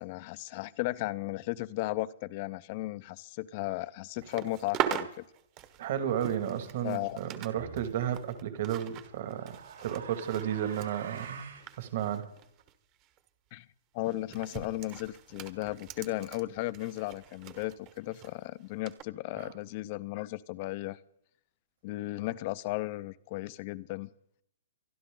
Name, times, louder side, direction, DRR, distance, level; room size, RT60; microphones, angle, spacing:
voice 1, 0.0-5.1 6.8-7.2 13.5-13.7 13.9-21.0 21.8-24.1, left 18 dB, 40° left, 17 dB, 0.7 m, -35 dB
sound 1, 4.2-7.5 7.8-12.7 13.0-13.3 14.1-18.3 18.9-19.0, right 10 dB, 30° right, 1.3 m, -41 dB
voice 2, 5.8-11.5 11.8-12.3 19.4-19.6, right 10 dB, 50° right, 8 dB, 2.2 m, -33 dB
sound 2, 7.5-7.9 8.9-11.7, right 6 dB, 85° right, 4.3 m, -46 dB
24.5 x 11.0 x 3.9 m, 0.72 s
hypercardioid pair, 155°, 0 cm